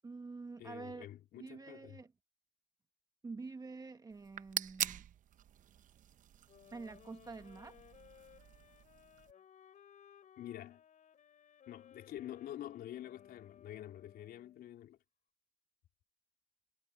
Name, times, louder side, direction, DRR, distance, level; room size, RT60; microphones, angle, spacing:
voice 1, 0.0-1.1 1.4-2.1 3.2-5.0 6.7-7.8, right 4 dB, 20° right, 1.3 m, -47 dB
voice 2, 0.6-2.0 10.4-10.8 11.7-15.0, left 12 dB, 70° left, 4.0 m, -47 dB
sound 1, 4.1-9.3, right 10 dB, 50° right, 0.8 m, -44 dB
sound 2, 6.5-14.7, left 8 dB, 50° left, 6.2 m, -61 dB
cardioid pair, 110°, 17 cm